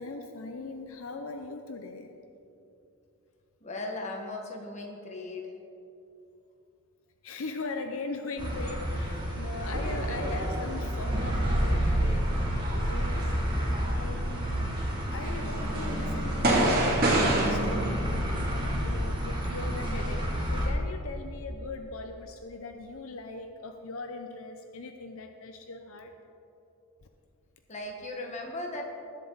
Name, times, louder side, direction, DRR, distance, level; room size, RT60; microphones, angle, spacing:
voice 1, 0.0-2.1 7.2-12.2 12.7-13.3 13.8-14.7 15.1-18.1 18.5-26.1, left 3 dB, 70° left, 5 dB, 0.7 m, -40 dB
voice 2, 3.6-5.5 27.7-28.8, left 2 dB, 30° left, 1 dB, 1.5 m, -37 dB
sound 1, 8.4-20.7, equal, 20° right, 2.0 m, -29 dB
sound 2, 9.7-10.6 11.1-14.9 15.2-17.5, right 1 dB, 40° right, 2.3 m, -29 dB
20.0 x 7.5 x 4.0 m, 2.8 s
head